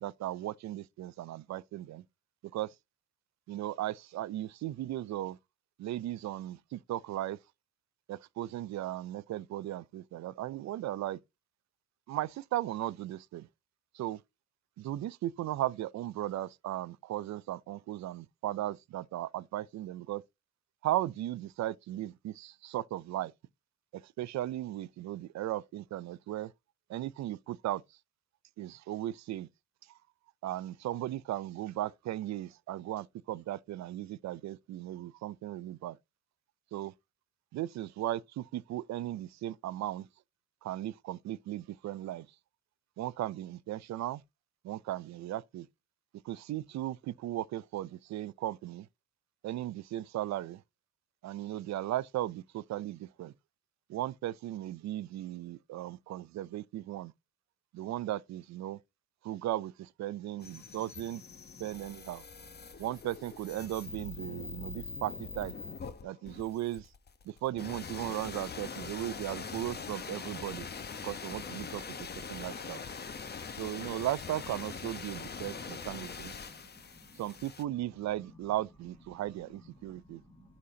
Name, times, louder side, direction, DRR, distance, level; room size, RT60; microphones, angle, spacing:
voice 1, 0.0-2.0 2.5-2.7 3.5-5.4 5.8-7.4 8.1-11.2 12.1-13.5 13.9-14.2 14.8-20.2 20.8-23.3 24.2-26.5 26.9-27.8 28.6-29.5 30.4-36.0 36.7-36.9 37.5-40.1 40.6-42.3 43.0-44.2 44.6-45.7 46.2-48.9 49.4-50.6 51.2-53.3 53.9-57.1 57.7-58.8 59.2-61.2 61.6-62.2 62.8-65.5 66.0-66.9 67.3-70.7 71.0-71.8 72.3-72.8 73.6-76.3 77.2-80.2, right 14 dB, 65° right, 0.5 m, -36 dB
sound 1, 60.4-77.6, left 5 dB, 35° left, 1.0 m, -43 dB
voice 2, 75.3-75.7 76.5-77.2 79.1-79.2 79.6-80.6, left 1 dB, 5° left, 1.7 m, -58 dB
11.0 x 4.2 x 2.8 m
cardioid pair, 90°, 30 cm